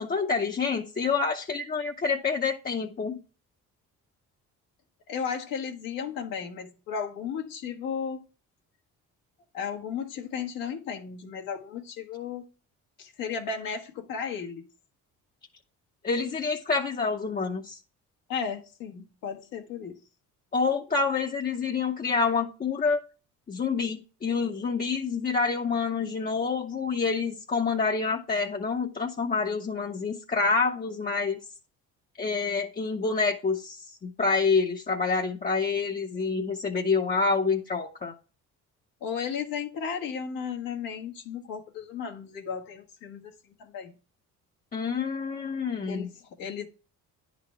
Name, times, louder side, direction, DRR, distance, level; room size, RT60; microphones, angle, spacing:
voice 1, 0.0-3.2 16.0-17.8 20.5-23.0 23.5-31.4 32.2-38.1 44.7-46.1, left 4 dB, 25° left, 0.7 m, -27 dB
voice 2, 5.1-8.2 9.5-12.5 13.0-14.6 18.3-20.0 39.0-43.3 43.6-43.9 45.9-46.7, left 6 dB, 90° left, 1.6 m, -34 dB
10.0 x 4.1 x 4.3 m
cardioid pair, 105°, 32 cm